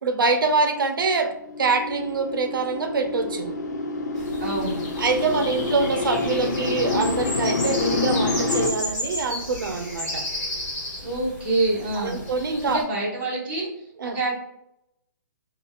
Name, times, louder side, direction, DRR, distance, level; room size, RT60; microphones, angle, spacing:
voice 1, 0.0-1.3 1.6-3.6 5.0-10.2 11.9-12.8 14.0-14.2, right 4 dB, 85° right, 7 dB, 0.6 m, -25 dB
sound 1, 1.1-8.7, left 3 dB, 55° left, 0.5 m, -27 dB
sound 2, 4.2-12.8, left 1 dB, 15° left, 1.5 m, -33 dB
voice 2, 4.4-4.8 11.0-12.2 12.6-14.4, right 2 dB, 35° right, -6 dB, 1.4 m, -27 dB
3.8 x 2.3 x 2.4 m, 0.80 s
hypercardioid pair, 165°, 11 cm